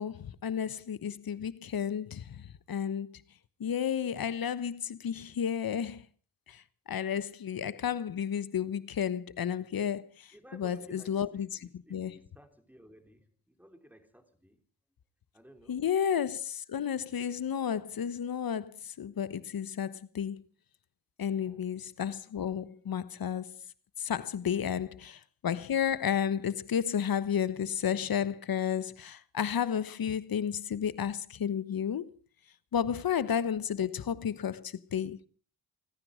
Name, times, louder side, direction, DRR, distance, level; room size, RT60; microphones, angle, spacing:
voice 1, 0.0-3.2 3.6-6.0 6.5-6.6 6.9-12.2 15.7-20.4 21.2-23.6 24.0-32.1 32.7-35.2, left 8 dB, 50° left, 1.2 m, -32 dB
voice 2, 10.3-14.6 15.3-15.8 21.4-21.6, right 1 dB, 5° right, 3.4 m, -55 dB
29.0 x 9.8 x 5.0 m
cardioid pair, 75°, 45 cm